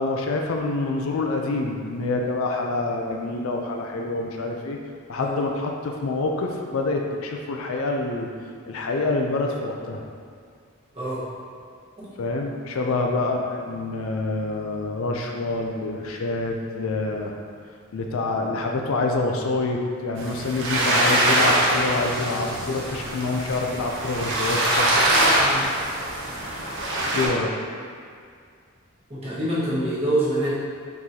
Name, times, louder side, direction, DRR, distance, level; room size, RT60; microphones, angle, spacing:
voice 1, 0.0-4.8 5.1-8.3 8.7-10.0 12.2-17.3 17.9-24.9 27.1-27.5, left 3 dB, 70° left, 2 dB, 0.4 m, -26 dB
voice 2, 10.9-11.3 12.0-12.1 12.8-12.9 25.4-25.6 29.1-30.5, right 1 dB, 30° right, -10 dB, 1.2 m, -26 dB
sound 1, 20.2-27.3, right 1 dB, 55° right, 0.8 m, -23 dB
4.7 x 3.8 x 2.8 m, 2.2 s
head